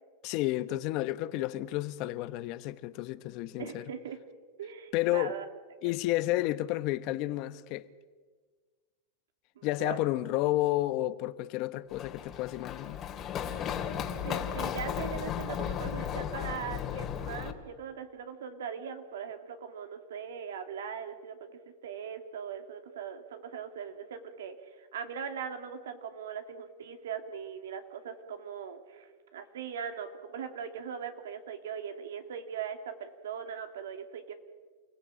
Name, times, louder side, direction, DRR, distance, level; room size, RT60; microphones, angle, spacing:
voice 1, 0.2-3.8 4.9-5.3 5.8-7.9 9.6-13.0, left 16 dB, 50° left, 1.1 m, -31 dB
voice 2, 3.6-4.2 4.6-5.5 9.6-10.1 14.2-34.3, right 7 dB, 85° right, 2.7 m, -40 dB
Run, 11.9-17.5, left 9 dB, 30° left, 2.4 m, -35 dB
28.5 x 17.0 x 8.9 m
supercardioid pair, 130°, 0 cm